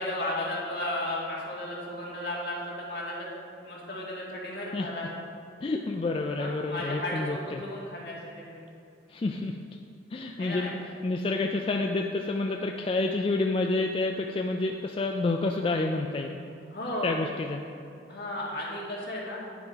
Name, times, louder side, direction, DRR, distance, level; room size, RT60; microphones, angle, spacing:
voice 1, 0.0-3.3 3.6-5.1 6.4-8.6 10.4-10.7 16.7-17.1 18.1-19.4, left 1 dB, 65° left, -5 dB, 2.1 m, -34 dB
voice 2, 5.6-7.6 9.1-9.6 10.1-10.8 11.0-16.4 17.0-17.6, left 2 dB, 30° left, 2 dB, 0.3 m, -29 dB
9.5 x 4.6 x 5.6 m, 2.7 s
head